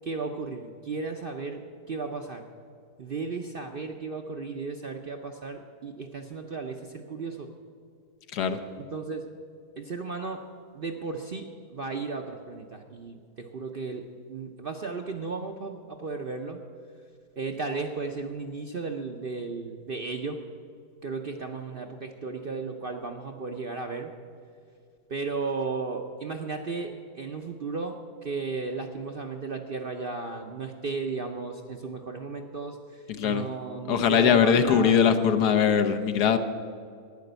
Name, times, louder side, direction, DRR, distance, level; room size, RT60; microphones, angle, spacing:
voice 1, 0.0-1.6 1.9-2.4 3.0-7.5 8.8-9.3 9.8-10.4 10.7-16.6 17.4-20.4 21.0-24.1 25.1-34.9, right 4 dB, 50° right, 3 dB, 0.7 m, -35 dB
voice 2, 33.9-36.4, left 7 dB, 75° left, 9 dB, 1.4 m, -21 dB
12.0 x 9.7 x 8.0 m, 2.4 s
omnidirectional pair, 1.7 m